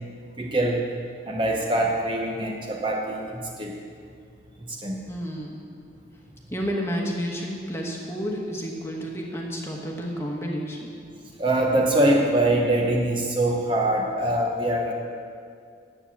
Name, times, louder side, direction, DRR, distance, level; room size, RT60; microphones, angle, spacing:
voice 1, 0.4-0.9 1.3-3.8 4.6-5.0 11.4-14.9, right 1 dB, 25° right, 0 dB, 0.9 m, -23 dB
voice 2, 5.0-5.6 6.5-10.9, equal, 15° left, -1 dB, 1.3 m, -31 dB
10.0 x 8.3 x 7.2 m, 2.3 s
head